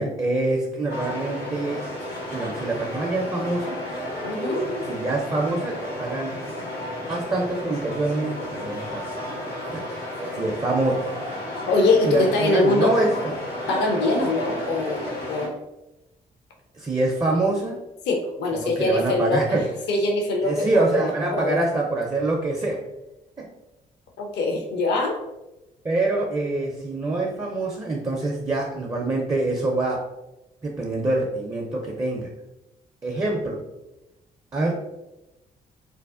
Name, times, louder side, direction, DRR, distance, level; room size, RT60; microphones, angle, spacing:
voice 1, 0.0-1.9 2.3-3.8 4.9-6.4 7.1-9.0 9.7-9.8 10.3-10.9 12.1-13.3 16.7-17.8 18.5-19.7 20.4-22.8 23.4-23.5 25.8-30.0 30.6-32.3 33.0-33.6 34.5-34.7, right 2 dB, 15° right, 0 dB, 0.4 m, -25 dB
sound 1, 0.9-15.5, left 1 dB, 80° left, 1.3 m, -32 dB
voice 2, 4.2-4.7 11.7-12.9 13.7-15.0 15.3-15.5 18.1-19.6 19.9-21.7 24.2-25.2, left 2 dB, 60° left, 1 dB, 0.5 m, -23 dB
2.6 x 2.1 x 2.3 m, 0.96 s
figure-of-eight pair, 40°, 21 cm